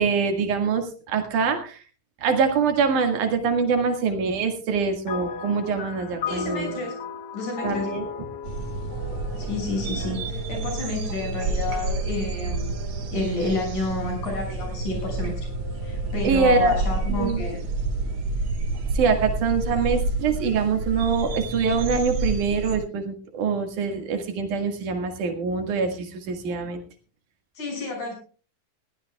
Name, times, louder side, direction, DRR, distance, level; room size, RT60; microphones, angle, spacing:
voice 1, 0.0-1.8 2.2-6.8 7.6-8.1 16.2-16.8 17.1-17.4 18.9-26.8, right 5 dB, 80° right, 5 dB, 3.4 m, -24 dB
sound 1, 5.1-10.6, left 6 dB, 60° left, 1.1 m, -35 dB
voice 2, 6.3-7.0 7.3-7.9 9.4-12.7 13.1-15.5 15.8-17.6 27.6-28.1, left 3 dB, 75° left, 1 dB, 7.9 m, -30 dB
sound 2, 8.4-22.8, right 3 dB, 65° right, 2.5 m, -29 dB
sound 3, 8.9-18.2, right 1 dB, 25° right, 7.1 m, -44 dB
21.0 x 15.5 x 2.3 m, 0.38 s
omnidirectional pair, 3.5 m